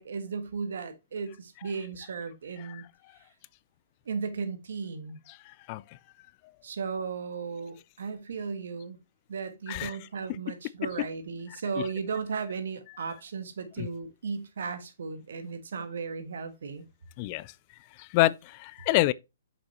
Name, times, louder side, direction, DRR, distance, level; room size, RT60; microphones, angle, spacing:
voice 1, 0.0-2.8 4.0-5.2 6.6-9.0 9.3-16.8, right 5 dB, 70° right, 1.5 m, -35 dB
voice 2, 5.5-5.8 9.7-10.0 13.8-13.9 17.2-17.5 18.0-19.1, left 18 dB, 40° left, 0.3 m, -27 dB
7.1 x 5.8 x 2.8 m
hypercardioid pair, 130°, 0 cm